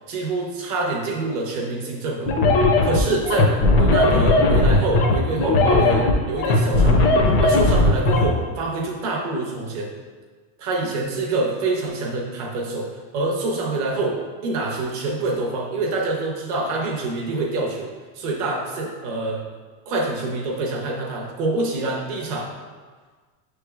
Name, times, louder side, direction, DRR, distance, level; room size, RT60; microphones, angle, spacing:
voice 1, 0.1-2.3 2.8-9.9 10.6-12.9 13.1-14.2 14.4-19.4 19.9-22.5, right 2 dB, 30° right, -1 dB, 0.4 m, -26 dB
sound 1, 2.3-8.3, left 2 dB, 50° left, 0.6 m, -17 dB
6.8 x 3.2 x 2.2 m, 1.5 s
supercardioid pair, 175°, 41 cm